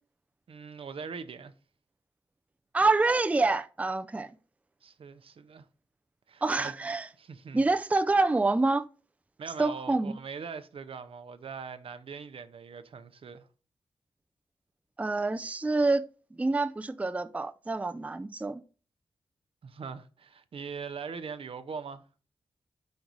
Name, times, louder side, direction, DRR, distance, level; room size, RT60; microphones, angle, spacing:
voice 1, 0.5-1.5 4.8-5.7 6.3-6.7 7.2-7.6 9.4-13.5 19.6-22.0, right 5 dB, 70° right, 0.6 m, -41 dB
voice 2, 2.7-4.3 6.4-7.1 7.5-8.9 9.6-10.2 15.0-18.6, right 3 dB, 15° right, 0.4 m, -27 dB
5.3 x 4.6 x 3.9 m
wide cardioid pair, 85°, 10 cm